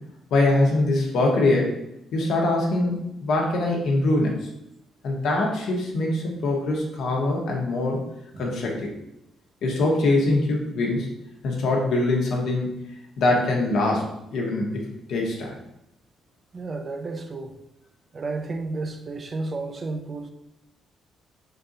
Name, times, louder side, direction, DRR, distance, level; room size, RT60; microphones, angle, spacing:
voice 1, 0.3-1.8 2.1-4.3 5.0-8.0 8.4-8.9 9.6-11.1 11.4-12.8 13.2-15.5, left 2 dB, 75° left, 1.0 m, -23 dB
voice 2, 16.5-17.5 18.1-20.3, right 3 dB, 40° right, 0.5 m, -32 dB
3.8 x 2.7 x 3.9 m
cardioid pair, 90°, 0 cm